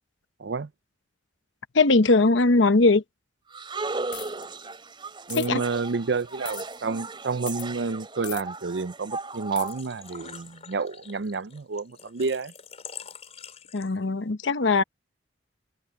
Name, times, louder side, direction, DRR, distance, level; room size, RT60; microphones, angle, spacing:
voice 1, 0.4-0.7 5.3-12.5 14.8-14.9, right 4 dB, 65° right, 0.6 m, -30 dB
voice 2, 1.7-3.0 5.4-5.6 13.7-14.8, left 3 dB, 85° left, 1.0 m, -20 dB
sound 1, 3.5-10.4, right 3 dB, 25° right, 3.2 m, -36 dB
sound 2, 4.1-4.4 5.3-5.5 6.4-6.6 7.5-7.7 8.2-8.4 9.6-9.7, left 14 dB, 65° left, 1.4 m, -38 dB
Engine / Trickle dribble / Fill (with liquid), 9.3-14.2, left 7 dB, 35° left, 4.5 m, -45 dB
open air
head